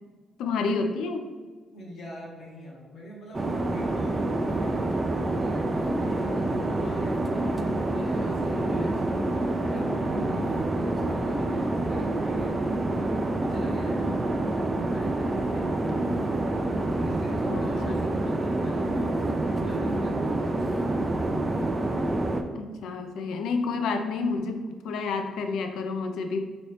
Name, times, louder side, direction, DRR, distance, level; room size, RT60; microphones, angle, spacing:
voice 1, 0.4-1.3 17.5-18.0 18.2-18.3 22.6-26.4, left 4 dB, 80° left, 6 dB, 0.4 m, -29 dB
voice 2, 1.7-9.1 9.6-12.6 13.1-14.0 14.7-15.9 17.0-19.2 19.5-20.9, left 1 dB, 65° left, -5 dB, 0.8 m, -45 dB
sound 1, 3.3-22.4, right 2 dB, 25° right, 0.3 m, -27 dB
3.0 x 2.9 x 3.1 m, 1.5 s
cardioid pair, 90°, 0 cm